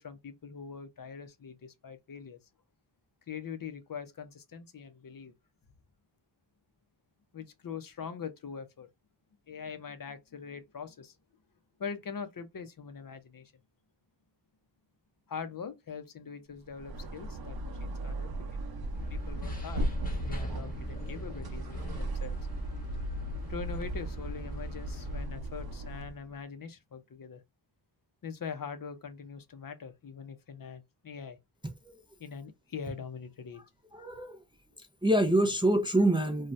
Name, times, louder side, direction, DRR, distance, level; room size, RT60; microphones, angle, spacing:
voice 1, 0.0-2.4 3.3-5.3 7.3-8.9 9.5-11.1 11.8-13.5 15.3-18.3 19.1-19.9 20.3-22.4 23.5-27.4 28.2-31.4 32.2-33.6, left 6 dB, 50° left, 0.6 m, -42 dB
sound 1, 16.7-26.2, right 1 dB, 55° right, 0.7 m, -37 dB
sound 2, 18.9-25.3, equal, 20° left, 1.0 m, -39 dB
voice 2, 33.9-34.4 35.0-36.5, right 1 dB, 10° right, 0.4 m, -25 dB
2.7 x 2.3 x 3.1 m
wide cardioid pair, 80°, 45 cm